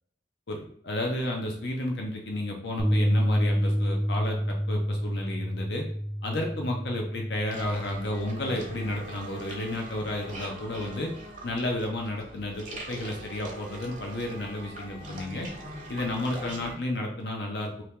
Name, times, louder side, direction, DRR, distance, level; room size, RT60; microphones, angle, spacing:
voice 1, 0.5-5.8 6.2-11.1 11.4-15.5 15.9-17.8, left 1 dB, 60° left, 1 dB, 0.7 m, -32 dB
sound 1, 2.8-9.0, equal, ahead, 0.5 m, -29 dB
sound 2, 7.5-16.7, right 1 dB, 45° right, 0.8 m, -42 dB
2.9 x 2.8 x 3.5 m, 0.66 s
head